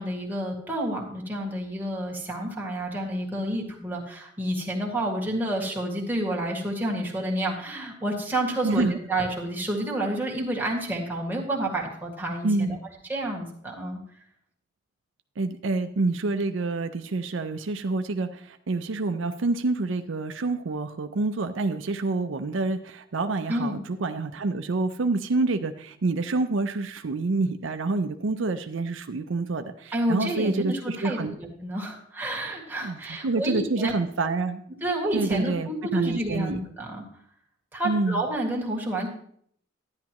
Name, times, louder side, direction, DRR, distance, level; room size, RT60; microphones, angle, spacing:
voice 1, 0.0-12.8 13.1-14.0 23.5-23.8 29.9-33.9 34.8-37.0 37.7-39.1, right 1 dB, 10° right, -2 dB, 1.9 m, -29 dB
voice 2, 8.6-9.0 12.4-12.8 15.4-31.3 32.8-34.6 35.1-36.6 37.8-38.2, right 3 dB, 80° right, 8 dB, 0.6 m, -27 dB
10.5 x 10.5 x 3.0 m, 0.64 s
head